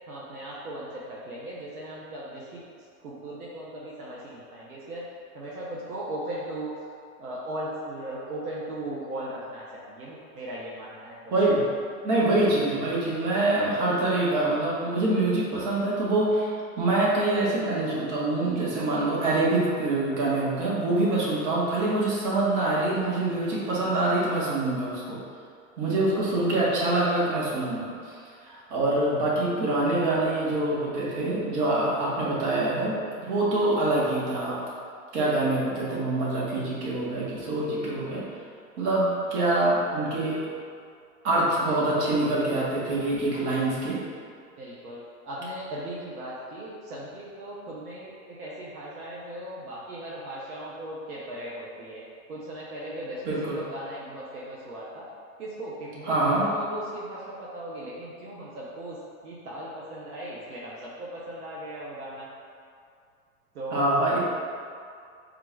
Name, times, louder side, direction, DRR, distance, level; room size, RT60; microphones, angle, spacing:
voice 1, 0.1-2.6 3.0-5.0 5.3-6.7 7.2-11.7 44.6-45.0 45.2-52.0 52.3-53.2 53.5-55.1 55.4-59.0 59.2-62.3 63.5-63.9, right 1 dB, 80° right, -6 dB, 0.9 m, -38 dB
voice 2, 11.3-11.6 12.0-16.5 16.8-25.2 25.8-28.1 28.5-34.5 35.1-38.2 38.8-40.4 41.2-44.0 53.2-53.6 56.0-56.4 63.7-64.2, right 2 dB, 50° right, -6 dB, 1.4 m, -25 dB
3.7 x 2.4 x 4.5 m, 2.3 s
hypercardioid pair, 115°, 44 cm